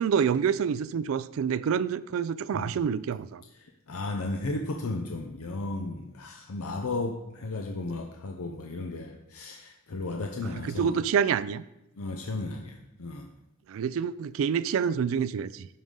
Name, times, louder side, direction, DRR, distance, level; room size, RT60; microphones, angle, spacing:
voice 1, 0.0-3.4 10.4-11.6 13.7-15.7, right 7 dB, 70° right, 17 dB, 0.3 m, -27 dB
voice 2, 3.9-10.9 12.0-13.3, left 2 dB, 85° left, 3 dB, 0.6 m, -34 dB
11.5 x 5.3 x 3.7 m, 0.90 s
head